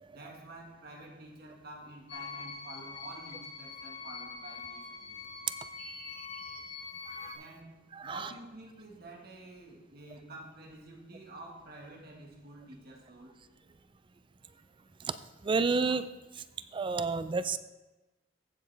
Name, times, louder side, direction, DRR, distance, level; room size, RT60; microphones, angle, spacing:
voice 1, 0.1-5.2 7.3-13.3, right 2 dB, 55° right, 0 dB, 1.6 m, -49 dB
sound 1, 2.1-7.4, left 5 dB, 85° left, 3.4 m, -44 dB
voice 2, 5.8-6.3 7.1-7.3 8.0-8.2 15.4-16.1 16.7-17.6, right 4 dB, 25° right, 12 dB, 0.4 m, -30 dB
15.5 x 6.6 x 3.4 m, 1.1 s
head